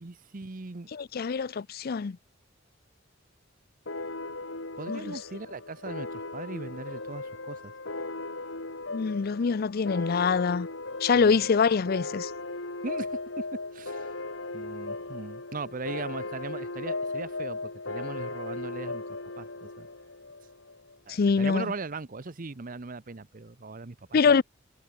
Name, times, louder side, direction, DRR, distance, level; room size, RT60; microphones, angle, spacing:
voice 1, 0.0-0.9 4.8-7.7 11.1-11.4 12.8-13.4 13.7-14.1 14.5-19.0 19.4-19.9 21.1-24.4, right 3 dB, 45° right, 0.8 m, -39 dB
voice 2, 0.9-2.2 4.9-5.2 8.9-10.7 11.0-12.3 21.1-21.7 24.1-24.4, left 5 dB, 50° left, 0.5 m, -24 dB
sound 1, 3.9-21.0, left 3 dB, 75° left, 3.2 m, -37 dB
head